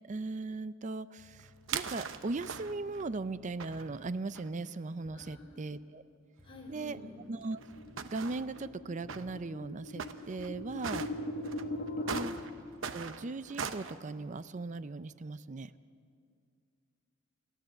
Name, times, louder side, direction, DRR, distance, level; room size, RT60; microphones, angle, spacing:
voice 1, 0.0-6.0 6.7-7.0 7.3-7.6 8.0-11.1 11.9-12.4 12.9-15.7, right 3 dB, 40° right, 15 dB, 0.5 m, -38 dB
sound 1, 1.2-4.2 5.0-5.4 6.4-9.6 10.4-10.8 11.7-12.9, left 1 dB, 15° right, 4.6 m, -59 dB
sound 2, 1.4-3.0 3.6-4.5 5.3-5.4 5.5-5.6 6.7-6.8 7.4-8.7 9.1-9.2 10.0-10.5 10.8-11.1 11.4-14.0, right 6 dB, 70° right, 0.9 m, -40 dB
voice 2, 5.1-5.6 6.4-7.1 11.8-12.3, left 1 dB, 25° left, -2 dB, 4.4 m, -51 dB
sound 3, 7.5-12.2, left 1 dB, 50° left, 1.6 m, -40 dB
29.0 x 13.0 x 7.8 m, 2.3 s
head